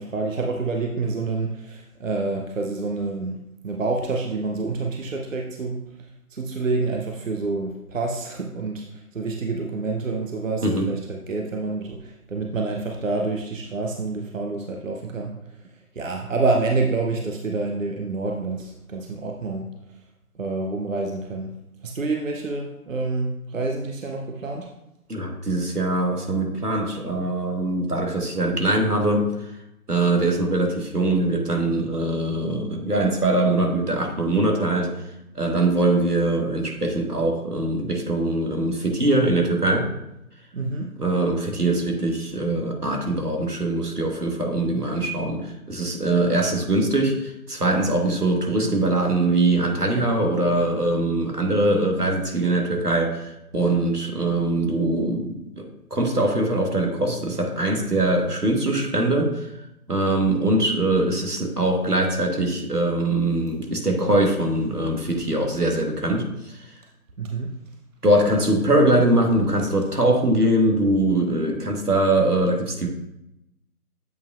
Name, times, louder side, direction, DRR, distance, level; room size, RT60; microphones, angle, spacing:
voice 1, 0.0-5.8 6.3-15.3 16.0-19.7 20.4-21.6 21.8-24.7 40.5-41.0 67.2-67.5, right 3 dB, 60° right, 2 dB, 0.7 m, -27 dB
voice 2, 25.1-29.3 29.9-34.9 35.3-39.9 41.0-55.6 55.9-59.5 59.9-66.7 68.0-72.9, right 2 dB, 90° right, 2 dB, 1.5 m, -22 dB
7.9 x 5.1 x 2.5 m, 0.86 s
figure-of-eight pair, 155°, 45 cm